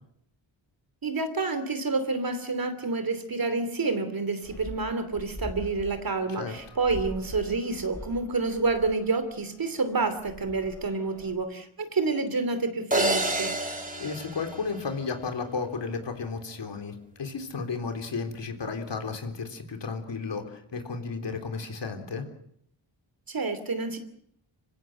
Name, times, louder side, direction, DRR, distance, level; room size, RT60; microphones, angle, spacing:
voice 1, 1.0-13.5 23.3-24.0, right 3 dB, 45° right, 10 dB, 2.9 m, -28 dB
sound 1, 4.4-11.3, left 1 dB, 5° left, 3.8 m, -43 dB
sound 2, 12.9-15.3, right 1 dB, 15° right, 3.2 m, -29 dB
voice 2, 14.0-22.2, left 4 dB, 65° left, 5 dB, 3.8 m, -33 dB
26.5 x 16.0 x 7.9 m, 0.72 s
wide cardioid pair, 105°, 46 cm